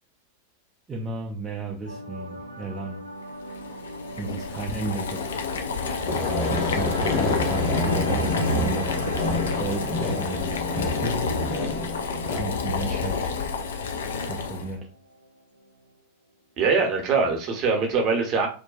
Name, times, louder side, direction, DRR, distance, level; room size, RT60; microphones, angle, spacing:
voice 1, 0.9-3.0 4.2-5.2 6.5-11.6 12.4-13.3 14.2-14.9, right 3 dB, 20° right, 0.4 m, -34 dB
sound 1, 1.8-16.0 16.3-16.5, right 1 dB, 85° right, 0.3 m, -41 dB
Boiling, 3.5-14.7, left 4 dB, 65° left, 0.4 m, -29 dB
sound 2, 6.1-12.4, left 3 dB, 35° left, 0.7 m, -29 dB
voice 2, 16.6-18.5, right 4 dB, 35° right, 0.8 m, -22 dB
2.5 x 2.2 x 2.3 m
figure-of-eight pair, 90°, 0 cm